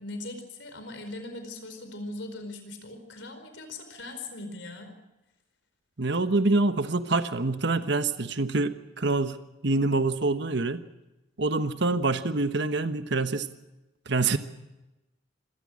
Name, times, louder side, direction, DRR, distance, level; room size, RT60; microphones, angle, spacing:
voice 1, 0.0-4.9, left 2 dB, 70° left, 7 dB, 4.7 m, -40 dB
voice 2, 6.0-10.8 11.4-13.5 14.1-14.4, right 3 dB, 65° right, 10 dB, 1.3 m, -26 dB
25.0 x 18.0 x 6.4 m, 0.98 s
head